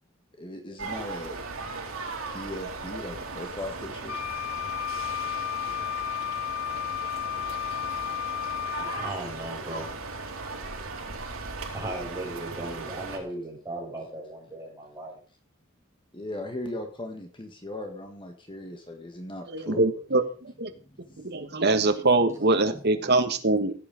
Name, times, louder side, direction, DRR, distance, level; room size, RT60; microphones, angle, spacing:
voice 1, 0.4-1.4 2.3-4.2 16.1-19.8 20.7-21.6 22.7-23.1, left 1 dB, 25° left, 4 dB, 1.6 m, -38 dB
sound 1, 0.8-13.2, right 4 dB, 80° right, 4.1 m, -37 dB
Wind instrument woodwind instrument, 4.1-9.2, left 11 dB, 75° left, 2.6 m, -32 dB
voice 2, 8.8-9.9 11.7-15.2, right 1 dB, 15° right, -2 dB, 5.9 m, -37 dB
voice 3, 19.5-20.7 21.2-23.7, right 2 dB, 50° right, 6 dB, 1.6 m, -24 dB
16.5 x 8.5 x 5.2 m, 0.38 s
head